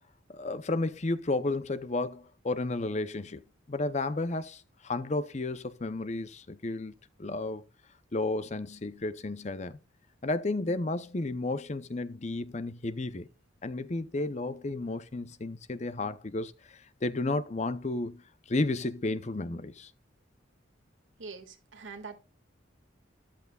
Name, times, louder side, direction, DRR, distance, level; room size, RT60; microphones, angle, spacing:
voice 1, 0.3-3.4 3.7-6.9 7.2-7.6 8.1-9.8 10.2-13.3 13.6-18.2 18.5-19.9, left 2 dB, 35° left, 0.6 m, -32 dB
voice 2, 21.2-22.2, right 4 dB, 70° right, 1.9 m, -43 dB
13.5 x 11.5 x 2.3 m
head